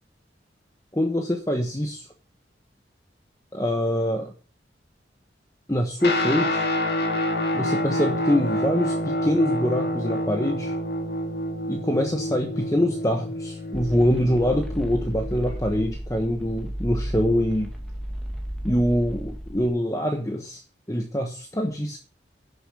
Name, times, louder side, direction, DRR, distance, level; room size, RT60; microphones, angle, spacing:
voice 1, 0.9-2.1 3.5-4.3 5.7-6.7 7.5-10.8 11.7-17.7 18.6-20.6 20.9-22.0, equal, 20° left, 3 dB, 1.2 m, -24 dB
Guitar, 6.0-15.6, left 1 dB, 65° left, 2.3 m, -28 dB
sound 1, 13.7-19.7, equal, ahead, 2.1 m, -33 dB
11.0 x 7.1 x 6.2 m, 0.37 s
head